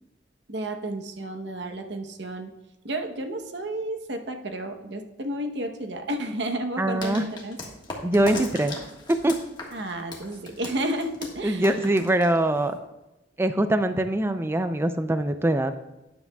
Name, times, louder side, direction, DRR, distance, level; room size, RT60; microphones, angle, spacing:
voice 1, 0.5-2.5 2.8-7.6 9.7-11.7, right 1 dB, 65° right, 5 dB, 0.9 m, -32 dB
voice 2, 6.8-7.2 8.0-8.7 9.1-9.4 11.4-12.8 13.4-15.7, right 1 dB, 15° right, 9 dB, 0.4 m, -23 dB
sound 1, 7.0-12.8, left 2 dB, 25° left, 1.5 m, -39 dB
13.0 x 9.5 x 2.3 m, 1.0 s
head